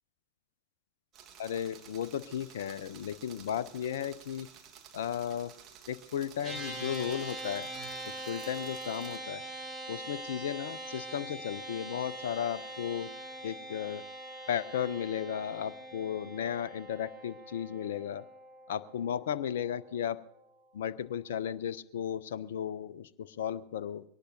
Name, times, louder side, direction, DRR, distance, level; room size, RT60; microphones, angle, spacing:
sound 1, 1.1-9.2, right 8 dB, 30° right, 1.5 m, -53 dB
voice 1, 1.4-4.5 4.9-5.5 5.9-7.7 8.3-9.4 9.9-13.1 13.4-14.0 14.5-18.2 18.7-20.2 20.7-24.0, left 9 dB, 60° left, 16 dB, 0.5 m, -35 dB
sound 2, 6.4-20.0, right 1 dB, 10° right, 3.1 m, -43 dB
22.5 x 18.0 x 2.7 m, 0.76 s
figure-of-eight pair, 90°, 0 cm